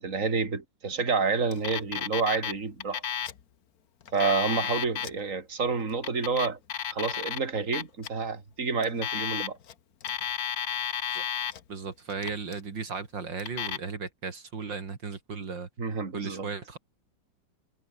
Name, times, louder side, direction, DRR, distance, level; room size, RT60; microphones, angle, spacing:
voice 1, 0.0-3.0 4.1-6.6 6.9-9.6 15.8-16.5, right 4 dB, 40° right, 3.5 m, -29 dB
Alarm, 1.5-2.5 2.8-3.4 4.0-5.1 5.9-7.4 7.7-8.1 8.8-9.7 10.0-11.6 12.1-12.6 13.4-13.8, left 8 dB, 55° left, 1.5 m, -32 dB
voice 2, 11.7-15.7 16.1-16.8, right 5 dB, 70° right, 3.4 m, -36 dB
omnidirectional pair, 2.1 m